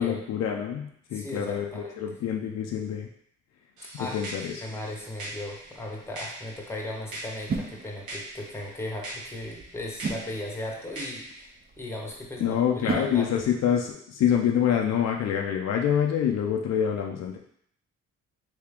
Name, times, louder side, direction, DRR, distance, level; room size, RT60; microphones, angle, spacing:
voice 1, 0.0-3.1 3.9-4.6 12.4-17.4, left 8 dB, 60° left, 1 dB, 0.5 m, -26 dB
voice 2, 1.1-2.0 4.0-4.2 4.6-13.4, left 1 dB, 10° left, -1 dB, 0.9 m, -37 dB
sound 1, 3.8-11.4, right 2 dB, 85° right, 1.2 m, -42 dB
sound 2, 4.6-13.9, right 4 dB, 30° right, 0.5 m, -39 dB
3.3 x 2.8 x 3.5 m, 0.68 s
cardioid pair, 90°, 30 cm